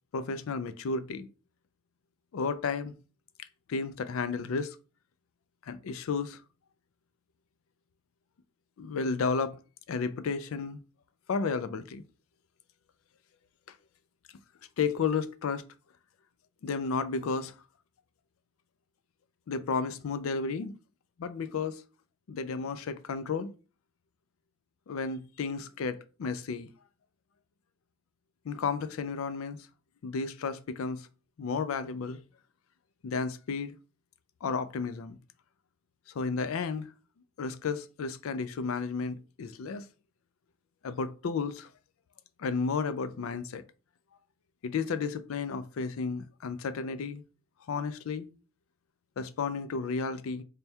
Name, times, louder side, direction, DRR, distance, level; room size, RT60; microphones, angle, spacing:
voice 1, 0.1-1.3 2.3-2.9 3.7-4.8 5.6-6.4 8.8-9.6 9.9-10.8 11.3-12.0 14.8-15.6 16.6-17.5 19.5-20.7 21.2-21.8 22.3-23.5 24.9-26.7 28.4-29.6 30.0-31.1 31.4-32.2 33.0-33.8 34.4-35.2 36.1-36.9 37.4-39.9 40.8-41.7 42.4-43.6 44.6-47.2 47.7-48.3 49.2-50.4, left 5 dB, 80° left, 0.4 m, -32 dB
3.4 x 2.2 x 4.2 m
head